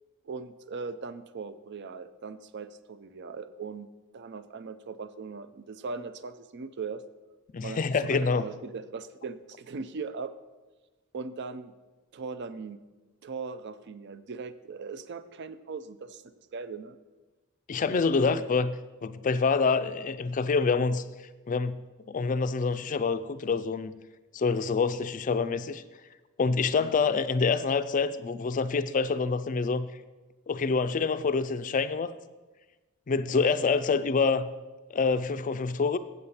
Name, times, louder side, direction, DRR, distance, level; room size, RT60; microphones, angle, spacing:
voice 1, 0.2-7.0 7.6-10.3 11.1-11.7 12.1-12.8 13.2-17.0 18.1-18.4 26.8-27.2, right 4 dB, 55° right, 13 dB, 0.5 m, -39 dB
voice 2, 7.5-8.4 17.7-18.7 19.0-21.0 21.5-21.8 22.1-24.0 24.3-25.8 26.4-29.9 30.5-32.1 33.1-34.5 34.9-36.0, left 4 dB, 35° left, 12 dB, 0.4 m, -26 dB
8.0 x 7.7 x 5.7 m, 1.2 s
head